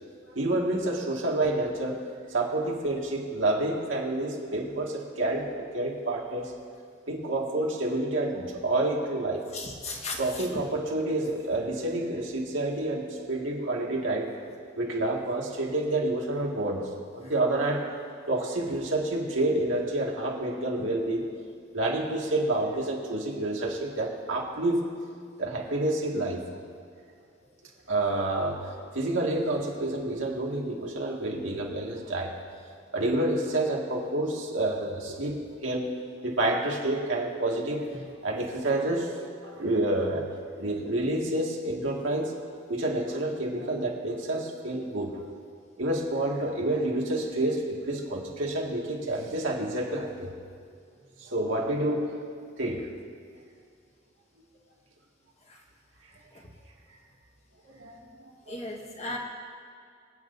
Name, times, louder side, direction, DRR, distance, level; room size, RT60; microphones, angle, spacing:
voice 1, 0.3-2.0 2.3-6.5 7.1-9.4 10.2-14.3 14.8-16.8 17.1-17.8 18.3-21.3 21.7-24.9 25.4-26.4 27.9-28.6 28.9-32.3 32.9-35.9 36.2-37.8 38.2-40.3 40.6-42.3 42.7-45.1 45.8-50.3 51.3-52.1 52.6-52.8 57.8-58.0 58.5-58.8, right 1 dB, 85° right, -2 dB, 2.0 m, -28 dB
voice 2, 9.5-10.5 55.5-55.6 58.5-59.2, left 2 dB, 35° left, 0 dB, 1.4 m, -36 dB
25.0 x 8.8 x 2.7 m, 2.3 s
head